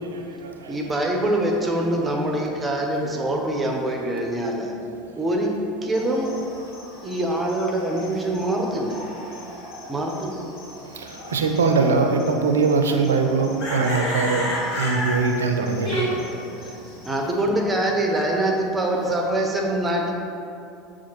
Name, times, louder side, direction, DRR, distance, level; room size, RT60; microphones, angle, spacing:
voice 1, 0.1-0.5 11.0-14.5 14.8-16.0, right 4 dB, 85° right, 4 dB, 0.3 m, -22 dB
voice 2, 0.7-4.7 5.2-5.5 5.8-6.3 7.0-9.0 9.9-10.4 17.0-20.1, right 1 dB, 20° right, 1 dB, 0.6 m, -24 dB
sound 1, 5.9-17.2, left 1 dB, 55° left, 1.5 m, -35 dB
voice 3, 13.9-14.5 15.8-17.1, equal, 40° left, -5 dB, 1.3 m, -32 dB
7.0 x 2.4 x 2.9 m, 2.6 s
hypercardioid pair, 80°, 0 cm